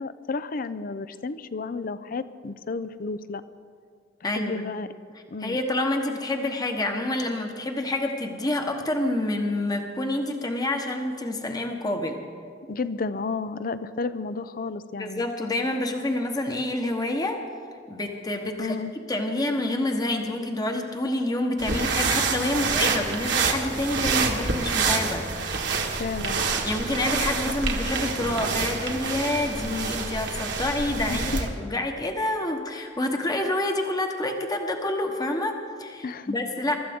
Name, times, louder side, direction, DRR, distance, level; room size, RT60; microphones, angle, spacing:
voice 1, 0.0-3.4 4.2-4.9 5.3-5.6 12.7-15.2 18.6-18.9 25.9-26.4 31.1-31.2 36.0-36.3, left 4 dB, 50° left, 14 dB, 0.5 m, -32 dB
voice 2, 4.2-4.7 5.4-12.2 15.0-17.4 17.9-18.8 19.1-25.2 26.6-36.8, left 1 dB, 20° left, 4 dB, 1.1 m, -28 dB
sound 1, 21.6-31.5, right 4 dB, 70° right, 1.6 m, -27 dB
23.5 x 13.0 x 3.6 m, 2.2 s
head